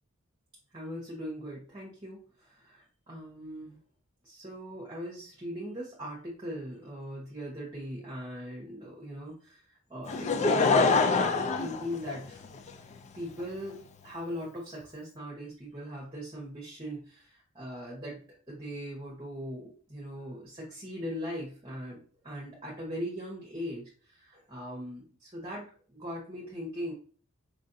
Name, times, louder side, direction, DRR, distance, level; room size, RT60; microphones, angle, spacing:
voice 1, 0.7-3.8 4.2-9.6 9.9-12.4 13.1-26.9, equal, 20° right, -3 dB, 1.0 m, -40 dB
Laughter / Crowd, 10.1-12.7 13.4-13.5, left 4 dB, 35° left, 0.3 m, -25 dB
4.9 x 2.5 x 2.6 m, 0.42 s
head